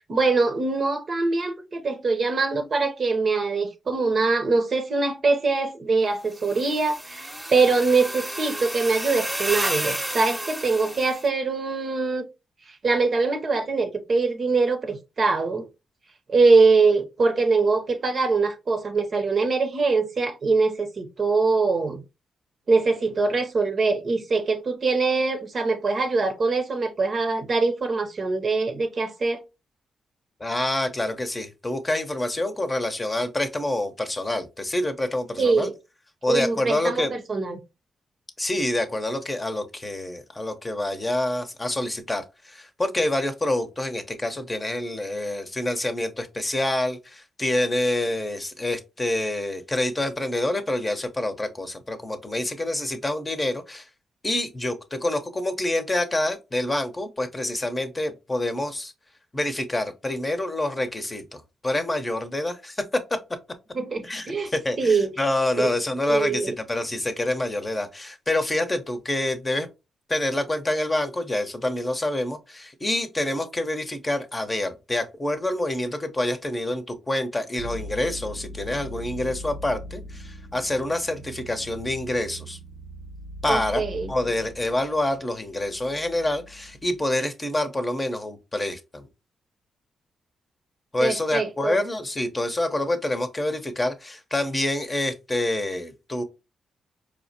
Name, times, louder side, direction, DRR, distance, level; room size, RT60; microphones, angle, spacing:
voice 1, 0.1-12.3 12.7-15.7 16.3-22.0 22.7-29.4 35.4-35.7 36.3-37.6 63.7-64.5 64.8-65.1 65.6-65.7 66.1-66.5 83.5-84.1 91.0-91.8, right 4 dB, 55° right, 0.7 m, -23 dB
sound 1, 6.3-11.2, right 1 dB, 10° right, 0.9 m, -31 dB
voice 2, 30.4-35.7 36.2-37.2 38.4-53.9 54.2-58.9 59.3-63.2 64.0-69.7 70.1-82.6 83.4-89.1 90.9-96.2, left 1 dB, 25° left, 0.8 m, -27 dB
sound 2, 77.6-87.2, equal, 75° left, 0.5 m, -40 dB
4.6 x 2.1 x 2.7 m
hypercardioid pair, 45°, 0 cm